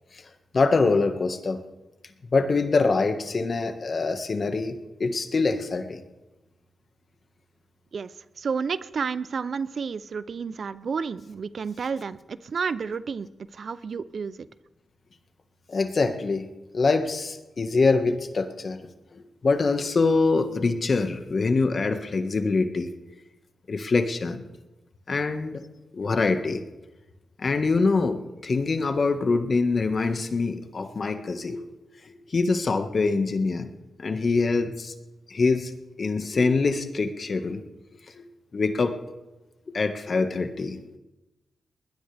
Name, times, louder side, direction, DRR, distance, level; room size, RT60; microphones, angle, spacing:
voice 1, 0.5-1.6 2.3-6.0 15.7-16.5 16.7-18.8 19.1-22.9 23.7-24.4 25.1-25.6 25.9-26.6 27.4-31.6 32.1-33.7 34.0-34.9 35.3-35.7 36.0-37.6 38.2-38.3 38.5-39.1 39.7-41.0, left 3 dB, 55° left, 7 dB, 1.6 m, -24 dB
voice 2, 8.4-13.3 13.5-14.4, right 5 dB, 65° right, 16 dB, 0.5 m, -31 dB
20.5 x 20.0 x 3.4 m, 1.1 s
cardioid pair, 65°, 0 cm